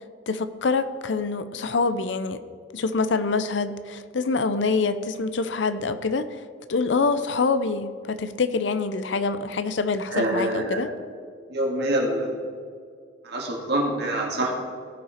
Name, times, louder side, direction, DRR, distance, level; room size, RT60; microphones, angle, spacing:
voice 1, 0.3-2.4 2.7-6.3 6.7-10.9, left 4 dB, 75° left, 12 dB, 0.6 m, -25 dB
voice 2, 10.1-10.9 11.5-12.3 13.2-14.5, right 1 dB, 60° right, -1 dB, 2.1 m, -25 dB
17.0 x 5.6 x 4.4 m, 2.1 s
head